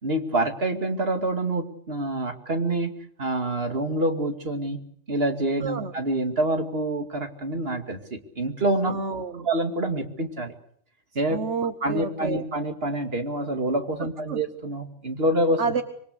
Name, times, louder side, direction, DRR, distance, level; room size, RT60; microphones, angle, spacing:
voice 1, 0.0-2.9 3.2-4.8 5.1-8.9 9.3-10.5 11.1-11.4 11.8-15.6, right 1 dB, 60° right, 5 dB, 2.6 m, -26 dB
voice 2, 5.6-5.9 8.9-9.5 11.3-12.4 14.3-14.4 15.6-15.8, right 5 dB, 85° right, 9 dB, 1.5 m, -29 dB
25.5 x 23.0 x 6.6 m, 0.63 s
omnidirectional pair, 1.2 m